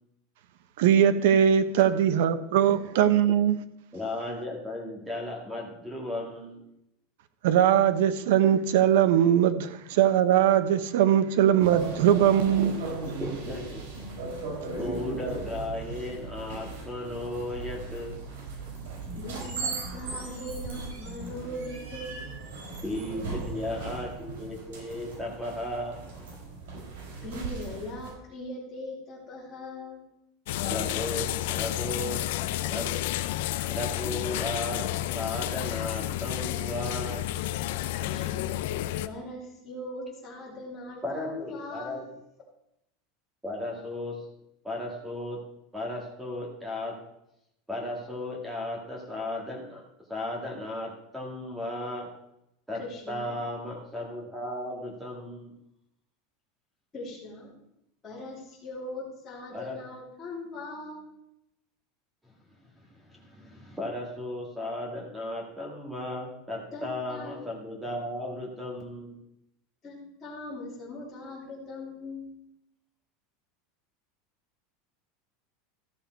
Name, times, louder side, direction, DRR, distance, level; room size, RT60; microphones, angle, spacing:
voice 1, 0.8-3.6 7.4-12.7, right 10 dB, 70° right, 0.9 m, -21 dB
voice 2, 3.9-6.6 13.2-14.1 14.7-18.2 22.8-26.0 30.6-32.3 32.6-33.0 33.7-34.8 35.1-37.2 41.0-42.0 43.4-44.2 44.6-45.4 45.7-47.0 47.7-49.8 50.1-52.1 52.7-52.8 53.1-55.5 59.5-59.8 62.3-62.4 62.7-69.2, left 1 dB, 5° right, 1.8 m, -35 dB
sound 1, 11.6-28.1, right 3 dB, 85° right, 4.8 m, -37 dB
voice 3, 19.2-22.2 27.2-30.0 37.9-38.5 39.0-42.0 52.8-53.3 56.9-57.5 58.0-61.0 66.7-67.4 69.8-72.3, left 1 dB, 15° left, 3.2 m, -40 dB
sound 2, 30.5-39.1, left 14 dB, 65° left, 0.5 m, -31 dB
13.5 x 6.9 x 4.5 m
supercardioid pair, 175°, 0 cm